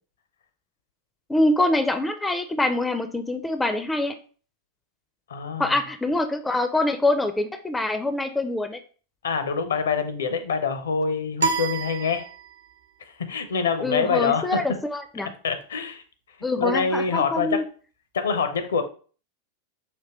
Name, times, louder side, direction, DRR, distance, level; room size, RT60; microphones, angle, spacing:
voice 1, 1.3-4.2 5.6-8.8 13.8-15.3 16.4-17.6, left 2 dB, 10° left, 8 dB, 0.4 m, -24 dB
voice 2, 5.3-5.8 9.2-12.3 13.2-14.6 15.4-16.0 16.6-17.6 18.1-18.8, left 5 dB, 65° left, 8 dB, 0.6 m, -25 dB
sound 1, 11.4-12.8, right 4 dB, 70° right, 0.6 m, -28 dB
5.1 x 2.7 x 2.9 m, 0.40 s
figure-of-eight pair, 90°, 0 cm